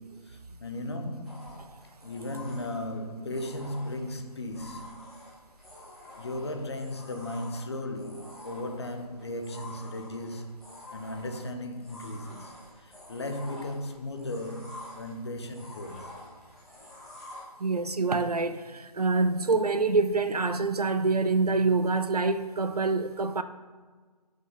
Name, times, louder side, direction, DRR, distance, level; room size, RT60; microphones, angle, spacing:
voice 1, 0.0-1.7 2.0-5.1 6.2-10.6 10.9-16.2, left 1 dB, 40° left, 0.9 m, -36 dB
sound 1, 1.2-17.4, left 1 dB, ahead, 0.8 m, -48 dB
voice 2, 17.6-23.4, right 3 dB, 65° right, 0.6 m, -26 dB
10.5 x 5.3 x 3.9 m
figure-of-eight pair, 150°, 21 cm